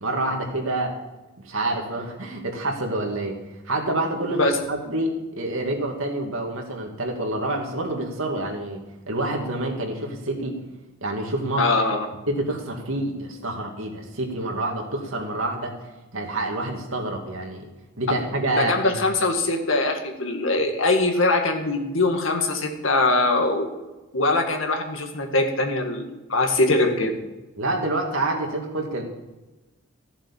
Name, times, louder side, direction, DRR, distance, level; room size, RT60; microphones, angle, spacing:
voice 1, 0.0-0.9 1.4-3.3 3.7-4.4 4.7-8.8 9.1-10.6 11.0-11.6 12.3-15.7 16.1-17.7 18.0-18.9 27.6-29.0, right 2 dB, 80° right, 2 dB, 2.4 m, -27 dB
voice 2, 11.6-12.1 18.6-23.7 24.1-27.2, left 2 dB, 70° left, 4 dB, 1.9 m, -22 dB
14.0 x 7.3 x 7.1 m, 1.1 s
head